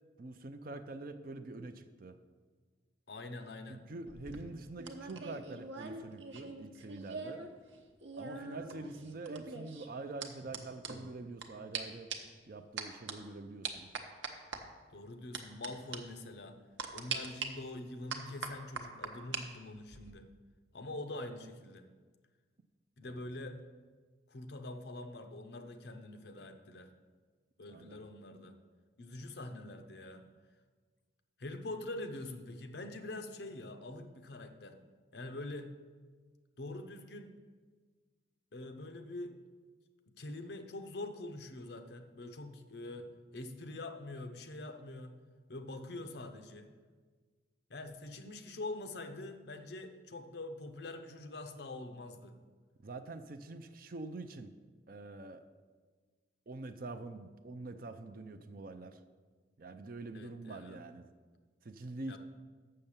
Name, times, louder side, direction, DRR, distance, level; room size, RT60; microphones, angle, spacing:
voice 1, 0.2-2.2 3.7-7.5 8.1-12.1 12.5-13.9 23.0-23.2 27.7-28.0 52.8-54.5 54.9-55.4 56.5-59.0 59.6-61.0 61.6-62.2, right 2 dB, 45° right, 9 dB, 0.5 m, -45 dB
voice 2, 3.1-3.8 8.4-8.9 14.9-16.6 16.9-20.3 20.7-21.9 23.0-23.6 24.3-26.9 27.6-28.6 29.0-30.4 31.4-34.8 35.1-35.7 36.6-37.3 38.5-39.3 40.2-45.1 45.5-46.7 47.7-52.4 60.1-60.8 62.1-62.2, left 2 dB, 60° left, 7 dB, 0.7 m, -45 dB
sound 1, 4.1-7.5 7.7-11.5 11.7-11.8 12.1-12.4 12.8-13.1 13.6-14.6 15.3-15.7 15.9-16.0 16.8-17.5 18.1-19.4 19.7-20.1, right 5 dB, 80° right, 0.9 m, -42 dB
6.7 x 6.5 x 7.2 m, 1.5 s
head